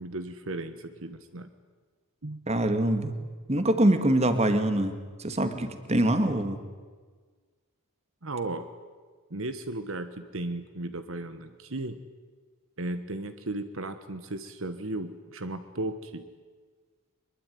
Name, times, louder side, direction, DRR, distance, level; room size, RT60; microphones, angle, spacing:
voice 1, 0.0-1.5 2.2-2.5 8.2-8.6 9.3-12.0 12.8-16.3, right 2 dB, 60° right, 10 dB, 1.4 m, -35 dB
voice 2, 2.5-3.1 3.5-4.9 5.2-6.6, right 1 dB, 30° right, 9 dB, 2.0 m, -24 dB
24.0 x 22.5 x 9.5 m, 1.5 s
head